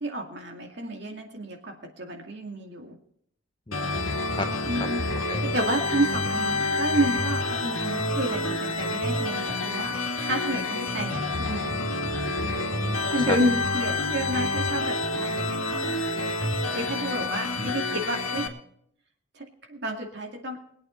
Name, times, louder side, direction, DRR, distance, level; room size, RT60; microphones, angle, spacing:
voice 1, 0.0-3.0 4.7-5.0 5.4-11.8 13.1-18.5 19.3-20.6, right 1 dB, 55° right, 2 dB, 2.3 m, -30 dB
sound 1, 3.7-18.5, left 2 dB, 85° left, 1.9 m, -28 dB
voice 2, 3.7-4.5 4.8-4.9 5.3-5.4 12.4-13.4 17.6-17.7, left 2 dB, 25° left, 6 dB, 0.9 m, -34 dB
22.0 x 8.6 x 4.4 m, 0.67 s
head